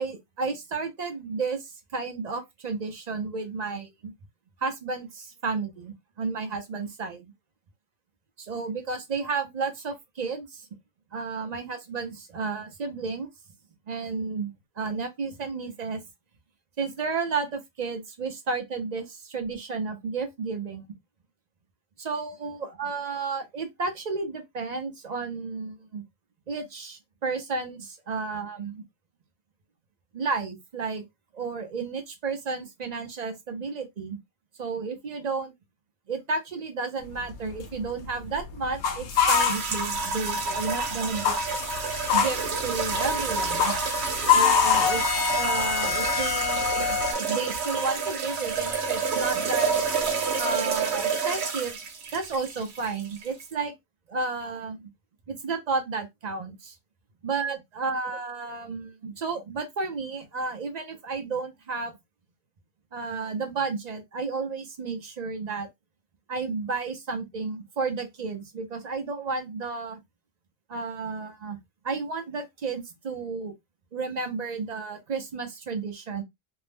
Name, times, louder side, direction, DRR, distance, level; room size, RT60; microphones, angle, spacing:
voice 1, 0.0-4.1 4.6-7.3 8.4-10.7 11.1-13.3 13.9-16.0 16.8-20.8 22.0-26.0 26.5-28.8 30.1-31.0 31.3-34.2 34.6-35.5 36.1-41.4 42.1-43.7 44.3-45.0 45.4-47.0 47.3-49.7 50.4-51.8 52.1-53.7 54.1-54.9 55.3-56.8 57.2-61.9 62.9-65.7 66.3-70.0 70.7-71.6 71.8-73.5 73.9-76.2, right 4 dB, 50° right, 0.6 m, -32 dB
sound 1, 37.1-40.3 40.6-47.1, left 7 dB, 85° left, 0.9 m, -25 dB
sound 2, 39.3-53.5, right 4 dB, 75° right, 1.0 m, -29 dB
2.6 x 2.0 x 3.3 m
omnidirectional pair, 1.1 m